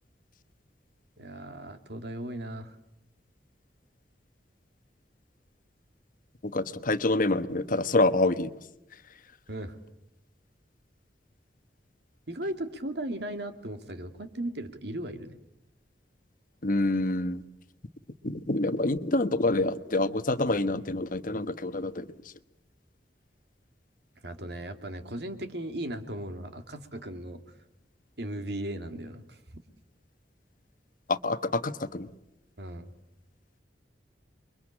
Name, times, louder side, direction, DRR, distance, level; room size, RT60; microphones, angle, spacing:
voice 1, 1.2-2.8 9.5-9.8 12.3-15.4 24.2-27.4 28.2-29.4 32.6-32.9, right 1 dB, 65° right, 8 dB, 2.4 m, -37 dB
voice 2, 6.4-8.5 16.6-17.4 18.2-22.0 31.1-32.1, left 2 dB, 50° left, 11 dB, 1.2 m, -27 dB
29.5 x 23.5 x 8.7 m, 0.85 s
head